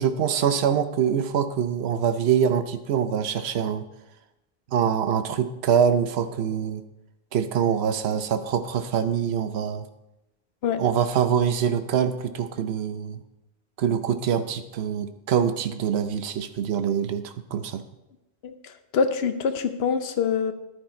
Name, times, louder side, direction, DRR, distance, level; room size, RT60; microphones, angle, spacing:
voice 1, 0.0-3.8 4.7-6.8 7.3-9.8 10.8-13.2 13.8-17.8, right 8 dB, 80° right, 9 dB, 1.0 m, -24 dB
voice 2, 18.9-20.5, left 6 dB, 75° left, 8 dB, 1.0 m, -24 dB
11.0 x 9.8 x 4.3 m, 0.95 s
omnidirectional pair, 1.1 m